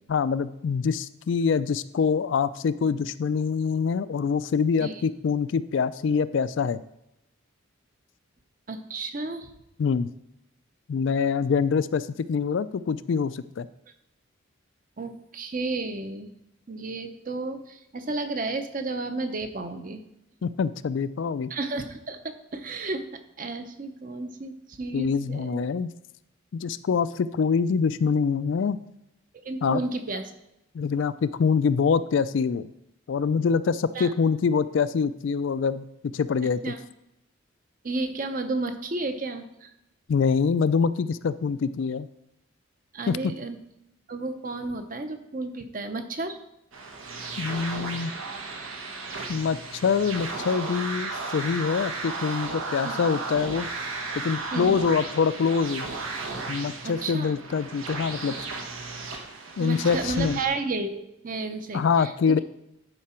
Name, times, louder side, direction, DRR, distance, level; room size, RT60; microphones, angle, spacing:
voice 1, 0.1-6.8 9.8-10.1 10.9-13.7 20.4-21.5 24.9-25.9 26.5-28.8 29.6-29.8 30.7-32.7 33.1-35.9 36.1-36.7 40.1-42.1 43.1-43.2 47.4-48.1 49.3-53.7 54.2-55.9 56.5-58.3 59.6-60.4 61.7-62.4, left 5 dB, 65° left, 15 dB, 0.3 m, -25 dB
voice 2, 8.7-9.5 15.0-16.3 16.7-20.0 21.5-25.6 29.4-30.3 33.9-34.1 36.6-36.9 37.8-39.7 42.9-43.6 44.1-46.4 52.8-52.9 54.5-54.8 56.8-57.4 59.6-62.4, right 3 dB, 40° right, 8 dB, 0.7 m, -32 dB
sound 1, 46.7-60.5, right 3 dB, 85° right, 1.1 m, -35 dB
11.0 x 4.9 x 4.3 m, 0.85 s
head